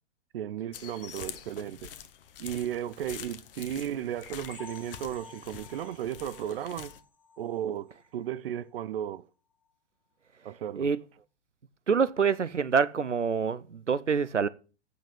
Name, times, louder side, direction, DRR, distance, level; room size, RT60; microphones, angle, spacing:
voice 1, 0.3-1.9 2.4-6.9 7.4-9.3 10.4-10.9, right 10 dB, 55° right, 0.8 m, -35 dB
sound 1, 0.7-7.0, left 9 dB, 50° left, 1.2 m, -46 dB
sound 2, 4.5-8.1 8.5-8.7 9.0-9.1 9.6-9.7, left 4 dB, 5° left, 2.4 m, -52 dB
voice 2, 11.9-14.5, right 6 dB, 90° right, 0.7 m, -26 dB
8.9 x 6.7 x 8.5 m
figure-of-eight pair, 110°, 35 cm